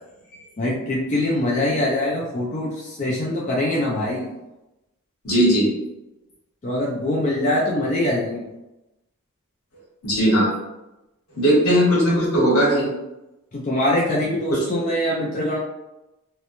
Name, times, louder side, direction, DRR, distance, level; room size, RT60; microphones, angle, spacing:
voice 1, 0.6-4.3 6.6-8.5 13.5-15.6, left 1 dB, 35° left, -4 dB, 0.4 m, -23 dB
voice 2, 5.2-5.7 10.0-10.5 11.4-12.9 14.5-14.6, equal, 80° left, -5 dB, 1.1 m, -18 dB
2.9 x 2.1 x 2.5 m, 0.97 s
head